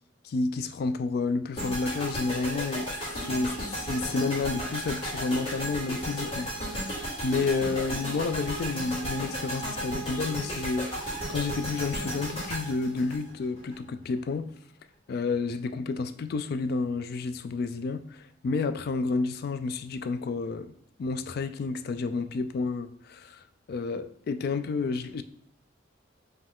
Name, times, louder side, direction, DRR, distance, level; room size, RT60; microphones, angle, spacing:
voice 1, 0.2-2.9 3.3-6.9 7.2-14.5 15.1-20.7 21.0-25.2, left 4 dB, 50° left, 0.3 m, -30 dB
sound 1, 1.6-13.7, equal, 30° left, 1.8 m, -34 dB
5.2 x 2.3 x 3.6 m
head